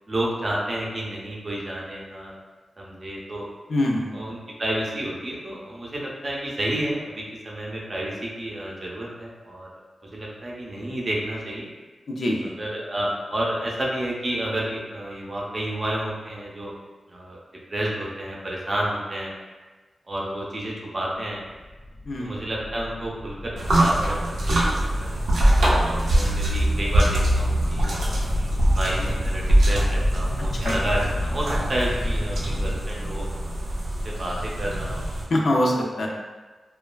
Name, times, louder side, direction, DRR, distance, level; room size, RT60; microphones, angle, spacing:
voice 1, 0.1-2.4 2.8-3.5 4.1-9.7 10.1-11.7 12.6-16.7 17.1-17.4 17.7-19.3 20.1-21.4 22.2-25.1 25.8-28.2 28.8-33.3 34.0-35.1, right 1 dB, 35° right, -3 dB, 0.5 m, -30 dB
voice 2, 3.7-4.1 12.1-12.5 22.1-22.3 30.6-30.7 35.3-36.1, left 1 dB, 60° left, -1 dB, 0.4 m, -23 dB
sound 1, 21.6-32.8, left 1 dB, 20° left, 0.6 m, -32 dB
sound 2, 23.6-35.2, right 1 dB, 85° right, 0.5 m, -23 dB
3.0 x 2.2 x 2.2 m, 1.3 s
wide cardioid pair, 110°, 0 cm